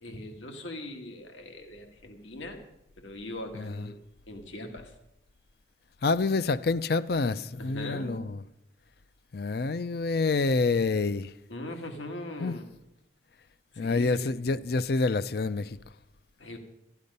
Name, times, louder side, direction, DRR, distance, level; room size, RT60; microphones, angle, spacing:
voice 1, 0.0-2.6 3.0-4.9 7.6-8.3 11.5-12.7 13.7-14.5 16.4-16.6, left 1 dB, 80° left, 1.7 m, -40 dB
voice 2, 6.0-8.4 9.3-11.3 12.4-12.5 13.8-15.8, left 3 dB, 55° left, 0.5 m, -27 dB
13.0 x 12.0 x 5.4 m
head